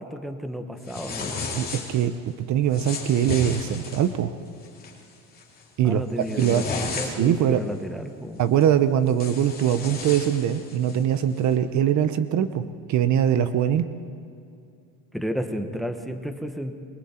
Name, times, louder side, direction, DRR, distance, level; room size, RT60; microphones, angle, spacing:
voice 1, 0.0-1.4 5.8-8.4 15.1-16.7, equal, ahead, 7 dB, 1.1 m, -32 dB
sound 1, 0.8-2.1 2.7-4.1 4.6-4.9 5.3-5.6 6.0-7.4 8.6-8.7 9.1-11.0, left 4 dB, 25° left, 3.0 m, -34 dB
voice 2, 1.6-2.1 2.5-4.3 5.8-6.0 6.4-6.6 7.1-7.6 8.4-12.6 12.9-13.9, right 10 dB, 45° right, 11 dB, 0.8 m, -22 dB
28.0 x 22.5 x 4.4 m, 2.5 s
cardioid pair, 145°, 38 cm